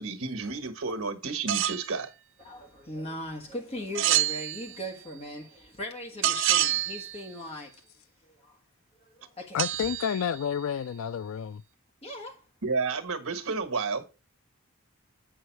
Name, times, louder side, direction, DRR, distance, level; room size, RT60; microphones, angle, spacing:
voice 1, 0.0-2.1 12.6-14.0, right 4 dB, 70° right, 1.4 m, -31 dB
sound 1, 1.5-1.9 3.9-4.9 6.2-7.3 9.6-10.7, right 12 dB, 55° right, 0.4 m, -28 dB
voice 2, 2.4-7.8 8.2-8.6 9.0-9.7 12.0-12.4, left 1 dB, 25° left, 1.3 m, -39 dB
voice 3, 9.5-11.6, left 8 dB, 65° left, 0.3 m, -30 dB
8.3 x 5.5 x 4.5 m
head